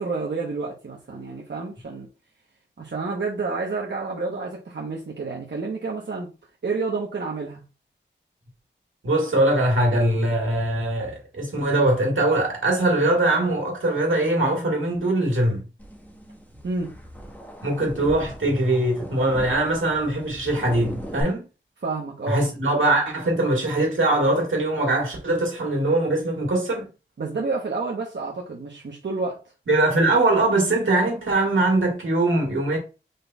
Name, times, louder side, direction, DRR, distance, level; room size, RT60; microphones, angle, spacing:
voice 1, 0.0-2.1 2.8-6.3 6.6-7.6 16.6-16.9 21.8-22.4 27.2-29.4, right 3 dB, 65° right, 1.0 m, -29 dB
voice 2, 9.0-15.6 17.6-21.4 22.3-26.9 29.7-32.8, right 2 dB, 85° right, 1.8 m, -22 dB
sound 1, 15.8-21.2, equal, 10° left, 1.4 m, -39 dB
5.2 x 4.0 x 2.3 m
wide cardioid pair, 65°, 20 cm